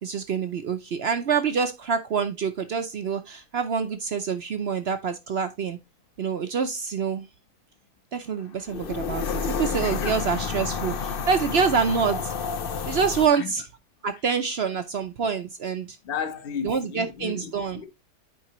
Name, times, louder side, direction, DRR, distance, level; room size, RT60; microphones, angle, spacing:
voice 1, 0.0-5.8 6.2-7.3 8.1-12.3 12.9-13.6 14.0-16.0 16.6-17.8, right 6 dB, 60° right, 0.7 m, -26 dB
sound 1, 8.7-13.3, left 6 dB, 60° left, 0.5 m, -30 dB
voice 2, 9.8-10.2 13.3-13.5 16.0-17.9, left 7 dB, 40° left, 1.0 m, -34 dB
9.3 x 4.8 x 3.0 m
omnidirectional pair, 1.7 m